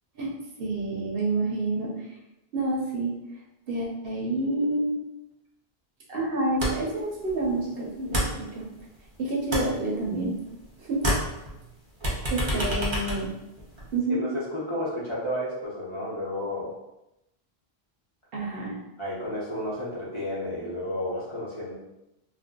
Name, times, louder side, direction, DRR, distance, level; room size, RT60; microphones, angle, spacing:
voice 1, 0.6-1.9 2.5-3.1 3.7-4.9 6.1-8.6 9.2-10.3 10.8-11.0 12.3-13.3 13.9-14.2 18.3-18.8, right 2 dB, 65° right, -3 dB, 0.9 m, -28 dB
sound 1, 6.6-7.0 7.3-9.1 9.3-10.7 10.9-14.0, equal, 30° right, 0.7 m, -29 dB
voice 2, 14.1-16.7 19.0-21.7, left 1 dB, 30° left, -8 dB, 0.9 m, -32 dB
2.6 x 2.1 x 3.6 m, 0.90 s
omnidirectional pair, 1.1 m